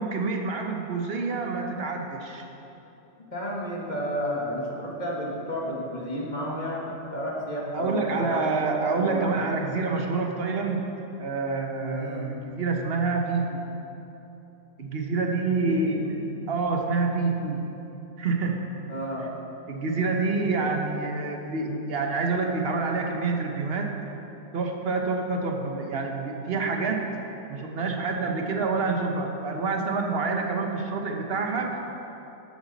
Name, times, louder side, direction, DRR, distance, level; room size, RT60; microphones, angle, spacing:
voice 1, 0.0-2.4 7.7-10.9 11.2-13.6 14.8-17.7 18.2-18.7 19.7-24.0 24.5-27.1 27.5-31.8, right 4 dB, 45° right, 2 dB, 0.9 m, -27 dB
voice 2, 3.3-9.5 11.9-12.2 15.6-16.0 18.9-19.3 20.6-20.7, equal, 25° left, -4 dB, 1.5 m, -31 dB
13.0 x 8.3 x 4.0 m, 2.9 s
omnidirectional pair, 2.0 m